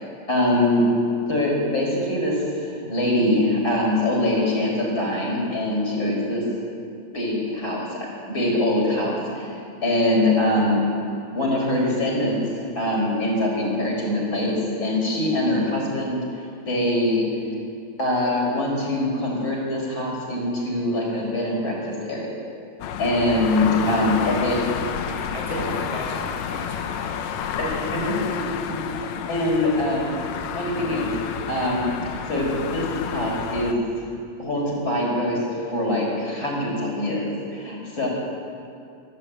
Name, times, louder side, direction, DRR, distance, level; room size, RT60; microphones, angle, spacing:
voice 1, 0.3-0.9 1.3-6.4 7.1-8.0 8.2-10.8 11.4-12.4 12.8-17.2 18.0-22.3 23.0-24.6 25.5-25.6 27.6-28.5 28.8-29.0 29.3-30.1 30.5-31.9 32.3-33.8 34.4-35.4 35.7-38.1, left 1 dB, 30° left, -2 dB, 5.3 m, -23 dB
sound 1, 22.8-33.7, left 8 dB, 70° left, 1.8 m, -30 dB
voice 2, 23.3-24.7 25.1-27.3, right 1 dB, 55° right, -4 dB, 4.9 m, -38 dB
27.5 x 11.5 x 8.9 m, 2.5 s
omnidirectional pair, 4.1 m